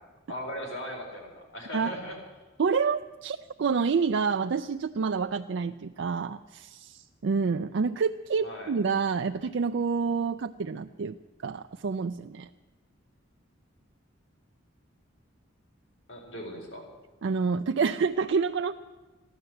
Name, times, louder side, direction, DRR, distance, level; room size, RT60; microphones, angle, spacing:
voice 1, 0.3-2.2 8.4-8.7 16.1-16.9, equal, 80° left, 0 dB, 4.5 m, -38 dB
voice 2, 2.6-11.1 11.4-12.5 17.2-18.7, right 5 dB, 60° right, 7 dB, 0.4 m, -28 dB
14.5 x 12.0 x 7.8 m, 1.2 s
head